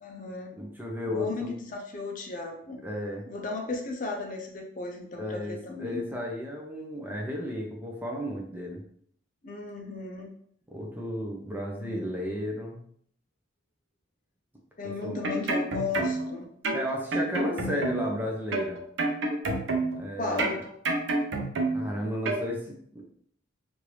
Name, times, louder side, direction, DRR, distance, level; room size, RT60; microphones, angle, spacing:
voice 1, 0.0-0.5 1.1-2.8 3.3-6.0 9.4-10.3 11.8-12.3 14.8-16.5 20.2-20.6, left 3 dB, 40° left, 2 dB, 0.5 m, -35 dB
voice 2, 0.5-1.5 2.8-3.2 5.1-8.8 10.7-12.8 15.0-15.2 16.7-18.8 20.0-20.6 21.7-23.1, equal, 10° right, -1 dB, 0.5 m, -34 dB
sound 1, 15.0-16.3 16.6-18.2 18.5-20.0 20.4-21.9 22.2-22.4, right 2 dB, 65° right, 0.6 m, -28 dB
3.1 x 2.5 x 3.1 m, 0.63 s
head